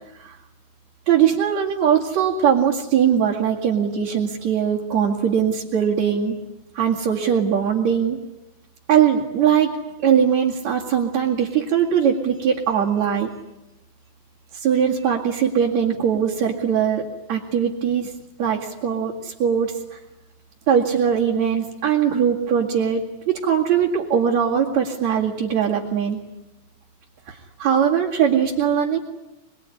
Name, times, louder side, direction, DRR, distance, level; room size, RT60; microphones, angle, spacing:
voice 1, 1.1-6.4 6.7-8.2 8.9-9.8 10.0-13.3 14.5-17.0 17.3-18.1 18.4-20.0 20.7-26.2 27.3-29.0, right 8 dB, 65° right, -3 dB, 3.5 m, -20 dB
27.0 x 21.5 x 9.9 m, 0.95 s
omnidirectional pair, 3.4 m